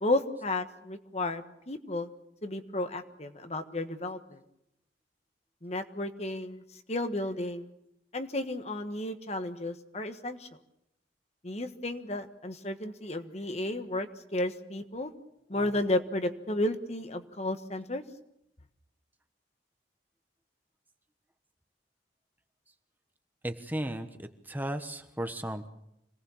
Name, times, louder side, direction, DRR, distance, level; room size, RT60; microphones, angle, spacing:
voice 1, 0.0-2.1 2.4-4.4 5.6-6.6 6.9-7.7 8.1-10.5 11.4-15.1 15.5-18.0, left 1 dB, 35° left, 8 dB, 1.4 m, -33 dB
voice 2, 23.4-25.7, right 1 dB, 10° right, 7 dB, 1.1 m, -35 dB
26.0 x 18.5 x 7.2 m, 0.82 s
head